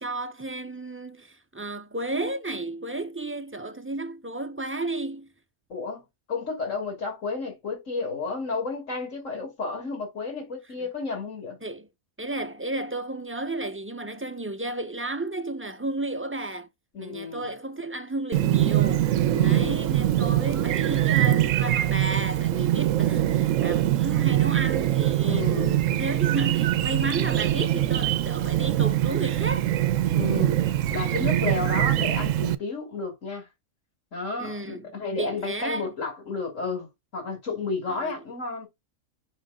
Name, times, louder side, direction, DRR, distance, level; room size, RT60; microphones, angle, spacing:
voice 1, 0.0-5.3 11.6-11.9 12.2-16.7 17.0-19.1 19.4-29.6 34.4-34.8 35.2-35.9 37.9-38.1, right 2 dB, 20° right, 0.3 m, -33 dB
voice 2, 5.7-6.0 6.3-11.6 16.9-17.4 19.3-19.8 25.2-25.8 30.1-30.6 30.9-33.5 34.1-36.9 37.1-38.7, left 4 dB, 60° left, 3.1 m, -32 dB
Chirp tweet, 18.3-32.5, right 13 dB, 70° right, 0.9 m, -23 dB
6.5 x 3.5 x 5.2 m
omnidirectional pair, 1.5 m